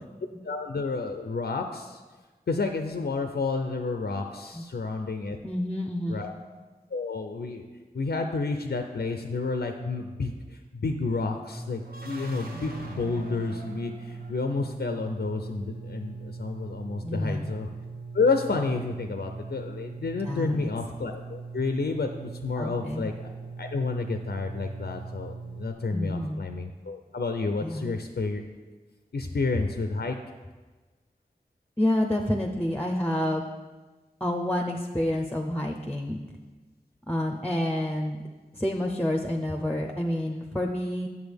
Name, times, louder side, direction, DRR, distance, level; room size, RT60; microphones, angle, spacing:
voice 1, 0.4-2.0 2.5-5.4 6.1-6.3 6.9-7.6 7.9-17.7 18.1-23.3 23.6-28.4 29.1-30.2, left 3 dB, 90° left, 5 dB, 0.5 m, -30 dB
voice 2, 5.4-6.3 17.0-17.5 20.3-20.7 22.6-23.1 25.9-26.4 27.6-28.0 31.8-33.5 34.2-36.2 37.1-38.2 38.5-41.1, left 1 dB, 10° left, 1 dB, 0.6 m, -28 dB
sound 1, 11.5-25.7, right 4 dB, 30° right, 1.2 m, -41 dB
sound 2, 11.8-14.8, right 1 dB, 65° right, 1.0 m, -43 dB
8.1 x 7.0 x 3.4 m, 1.3 s
wide cardioid pair, 55°, 16 cm